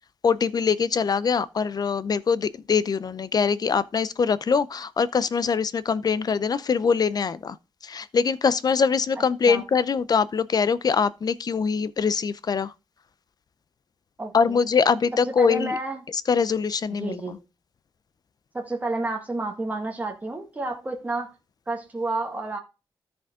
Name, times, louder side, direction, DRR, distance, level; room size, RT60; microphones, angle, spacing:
voice 1, 0.2-7.6 7.8-12.7 14.3-15.7 16.3-17.2, left 5 dB, 50° left, 0.6 m, -23 dB
voice 2, 14.2-14.7 15.4-16.0 17.0-17.4 18.5-21.3 21.7-22.6, right 2 dB, 20° right, 1.8 m, -30 dB
13.5 x 5.2 x 3.7 m
wide cardioid pair, 110°, 9 cm